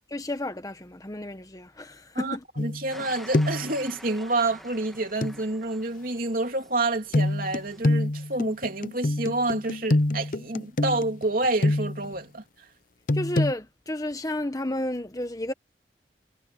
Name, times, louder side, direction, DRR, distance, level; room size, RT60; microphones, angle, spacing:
voice 1, 0.1-2.4 13.1-15.5, left 1 dB, 20° left, 1.3 m, -32 dB
voice 2, 2.1-12.4, right 2 dB, 50° right, 3.3 m, -28 dB
sound 1, 2.6-3.1 3.3-3.8 5.2-5.4 7.1-12.1 13.1-13.5, left 1 dB, 50° left, 0.8 m, -25 dB
sound 2, 2.9-8.0, equal, ahead, 3.0 m, -48 dB
head